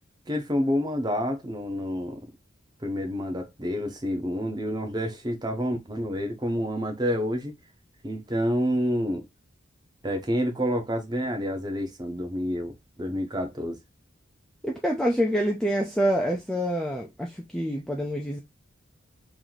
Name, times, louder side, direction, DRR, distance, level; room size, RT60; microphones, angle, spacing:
voice 1, 0.3-2.2 2.8-7.5 8.0-9.3 10.0-13.8, equal, 20° right, 0.7 m, -28 dB
voice 2, 14.6-18.4, equal, ahead, 0.4 m, -26 dB
3.1 x 2.6 x 3.9 m
head